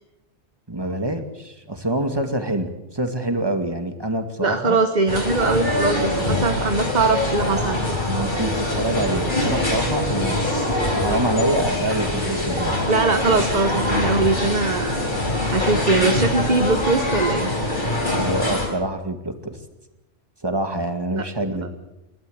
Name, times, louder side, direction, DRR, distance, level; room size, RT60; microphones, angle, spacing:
voice 1, 0.7-4.8 8.1-10.4 10.7-12.8 18.2-19.6 20.4-21.7, right 1 dB, 20° right, 7 dB, 2.1 m, -26 dB
voice 2, 4.4-7.8 12.9-14.9 15.5-17.5 21.1-21.3 21.5-21.7, right 3 dB, 40° right, 8 dB, 1.2 m, -21 dB
sound 1, 5.1-18.7, left 1 dB, 45° left, 5.2 m, -23 dB
28.5 x 13.0 x 8.0 m, 0.92 s
omnidirectional pair, 1.2 m